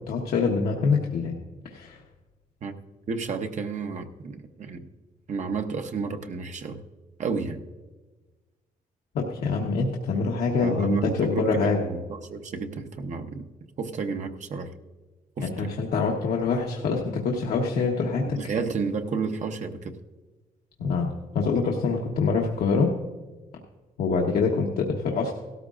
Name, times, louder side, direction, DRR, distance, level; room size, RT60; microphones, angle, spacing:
voice 1, 0.1-1.3 1.7-2.0 9.1-11.8 15.4-18.2 20.8-22.9 24.0-25.3, left 4 dB, 80° left, -1 dB, 1.2 m, -25 dB
voice 2, 3.1-4.9 5.3-6.8 7.2-7.6 10.6-13.5 13.8-14.7 15.4-15.7 18.4-19.9, right 4 dB, 50° right, 6 dB, 0.9 m, -31 dB
16.5 x 13.0 x 2.5 m, 1.3 s
cardioid pair, 105°, 15 cm